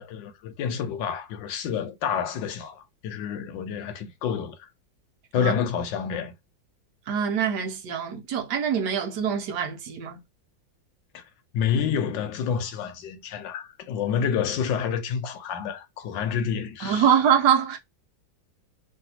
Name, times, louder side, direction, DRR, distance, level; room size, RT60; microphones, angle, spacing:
voice 1, 0.0-4.7 5.3-6.3 11.1-11.2 11.5-17.1, left 7 dB, 75° left, 1.3 m, -28 dB
voice 2, 7.1-10.2 16.8-17.8, right 8 dB, 70° right, 1.2 m, -24 dB
3.2 x 2.7 x 2.7 m
omnidirectional pair, 2.1 m